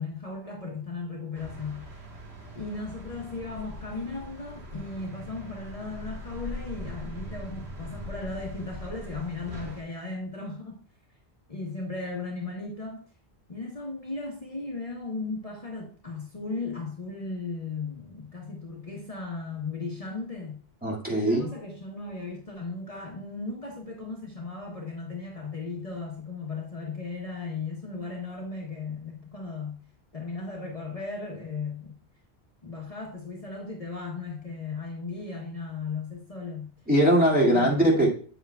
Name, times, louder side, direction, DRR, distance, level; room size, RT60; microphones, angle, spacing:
voice 1, 0.0-2.0 2.5-10.8 11.5-13.0 13.5-20.6 21.1-29.8 30.1-32.0 32.6-36.7 37.5-38.1, left 3 dB, 35° left, 1.2 m, -36 dB
sound 1, 1.3-9.8, equal, 75° right, 1.8 m, -41 dB
voice 2, 20.8-21.5 36.9-38.1, right 1 dB, 10° right, 2.2 m, -21 dB
9.0 x 7.4 x 2.3 m
omnidirectional pair, 1.1 m